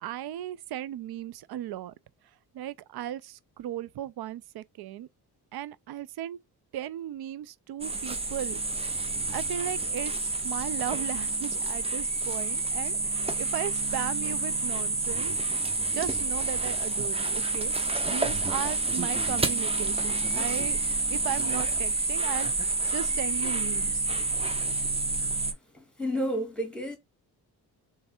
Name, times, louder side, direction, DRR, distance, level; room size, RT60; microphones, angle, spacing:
voice 1, 0.0-1.9 2.5-5.1 5.5-6.4 6.7-8.6 9.3-15.3 15.8-17.7 18.1-20.8 21.1-24.0, right 12 dB, 70° right, 0.5 m, -36 dB
sound 1, 7.8-25.5, right 3 dB, 15° right, 0.6 m, -29 dB
voice 2, 25.7-27.0, equal, ahead, 1.8 m, -31 dB
3.4 x 3.3 x 4.3 m
cardioid pair, 115°, 39 cm